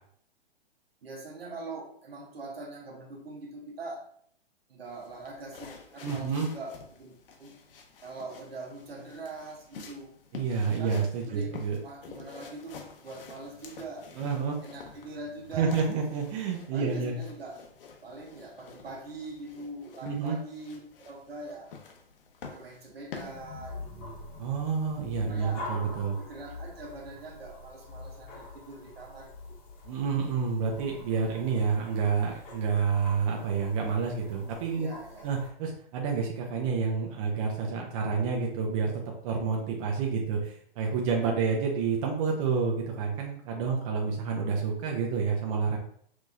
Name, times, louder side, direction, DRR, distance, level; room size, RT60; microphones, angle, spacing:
voice 1, 1.0-4.1 4.7-7.6 8.0-10.2 10.8-14.1 14.6-15.8 16.7-17.6 18.0-21.7 22.5-24.2 25.3-25.6 26.2-29.6 34.8-35.3, right 3 dB, 65° right, 2 dB, 1.1 m, -43 dB
sound 1, 4.9-23.3, left 5 dB, 60° left, 0.9 m, -49 dB
voice 2, 6.0-6.5 10.3-11.8 14.2-14.6 15.6-17.2 20.0-20.4 24.4-26.2 29.9-34.9 35.2-45.8, right 5 dB, 35° right, 0 dB, 0.7 m, -29 dB
sound 2, 23.1-35.5, left 3 dB, 30° left, 1.1 m, -45 dB
6.0 x 2.7 x 2.4 m, 0.63 s
hypercardioid pair, 125°, 31 cm